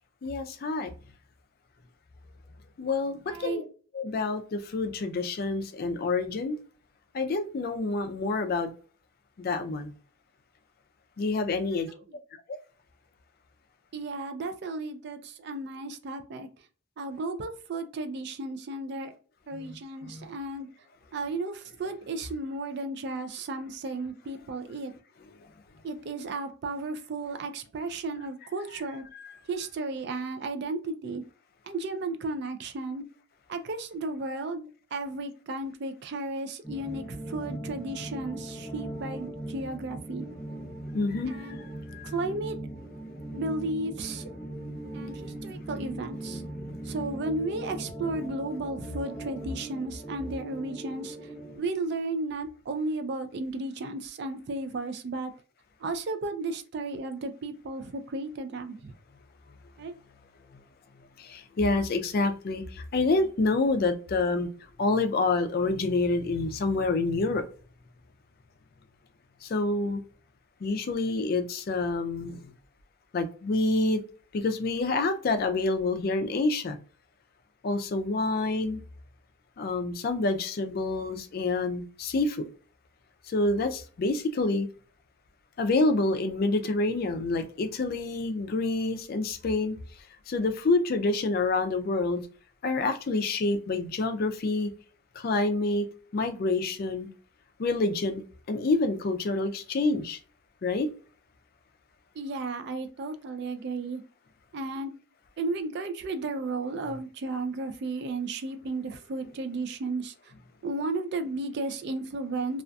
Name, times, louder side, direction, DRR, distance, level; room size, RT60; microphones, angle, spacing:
voice 1, 0.2-0.9 2.8-3.6 3.9-6.6 7.1-8.7 9.4-9.9 11.2-11.9 19.5-19.8 20.0-20.3 29.1-29.3 40.9-41.4 41.9-42.1 61.2-64.5 64.8-67.4 69.5-70.0 70.6-72.5 73.1-74.0 74.3-76.8 77.6-78.8 79.6-82.4 83.3-84.7 85.6-89.8 90.3-92.2 92.6-94.7 95.2-95.9 96.1-97.1 97.6-98.2 98.5-100.2 100.6-100.9, left 3 dB, 50° left, 0.3 m, -27 dB
voice 2, 3.3-3.6 13.9-16.5 17.0-19.1 19.5-20.7 21.1-24.9 25.8-29.0 29.5-31.2 31.7-33.0 33.5-34.7 34.9-40.3 41.3-41.6 42.0-42.6 43.3-44.2 44.9-46.4 46.9-51.2 51.5-55.3 55.8-58.9 59.8-59.9 102.2-104.0 104.5-104.9 105.4-110.1 110.6-112.6, right 2 dB, 55° right, 0.3 m, -34 dB
sound 1, 36.6-51.6, right 1 dB, 5° left, 0.6 m, -39 dB
2.5 x 2.4 x 2.2 m
head